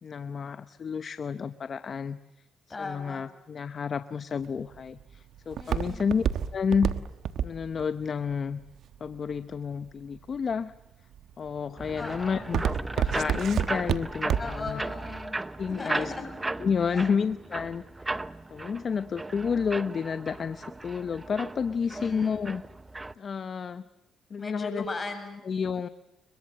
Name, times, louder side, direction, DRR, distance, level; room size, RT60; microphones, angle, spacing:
voice 1, 0.0-2.2 2.8-6.2 6.5-6.9 7.4-8.6 9.0-10.7 11.4-12.6 12.9-14.8 15.6-16.1 16.6-18.2 18.5-22.6 23.2-23.8 24.3-24.8 25.4-25.9, left 6 dB, 45° left, 12 dB, 0.9 m, -30 dB
voice 2, 2.7-3.2 5.6-6.2 12.0-12.5 14.4-16.3 16.9-17.1 21.9-22.4 24.4-25.5, left 3 dB, 25° left, 5 dB, 7.8 m, -38 dB
Walk footsteps, 4.4-9.6 10.2-10.6 11.1-11.5 11.8-14.7 15.0-15.1, right 9 dB, 70° right, 1.3 m, -29 dB
sound 1, 11.8-23.1, right 2 dB, 15° right, 0.9 m, -36 dB
30.0 x 22.5 x 7.6 m, 0.98 s
cardioid pair, 90°, 0 cm